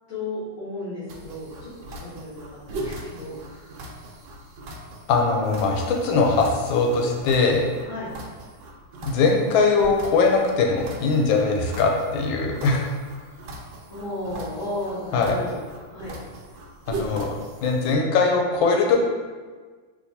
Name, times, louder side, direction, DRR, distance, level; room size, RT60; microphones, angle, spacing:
voice 1, 0.1-3.7 7.8-8.1 13.3-13.5 13.8-15.6 15.9-16.1, left 1 dB, 50° left, -13 dB, 1.3 m, -34 dB
sound 1, 1.1-18.0, right 1 dB, 75° right, 1.1 m, -39 dB
voice 2, 5.1-7.6 9.0-12.9 15.1-15.4 16.9-17.3 17.6-19.0, left 4 dB, 85° left, 1 dB, 1.3 m, -21 dB
3.6 x 2.7 x 2.7 m, 1.4 s
omnidirectional pair, 2.1 m